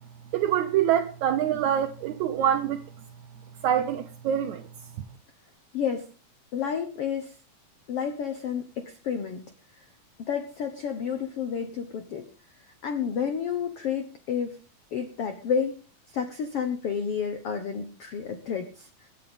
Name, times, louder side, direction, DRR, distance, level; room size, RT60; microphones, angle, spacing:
voice 1, 0.3-2.8 3.6-4.7, right 10 dB, 80° right, 1.6 m, -25 dB
voice 2, 5.7-6.1 6.5-7.4 7.9-9.4 10.2-12.3 12.8-14.6 14.9-15.8 16.1-19.1, left 7 dB, 80° left, 1.3 m, -30 dB
25.0 x 9.2 x 3.6 m
omnidirectional pair, 4.3 m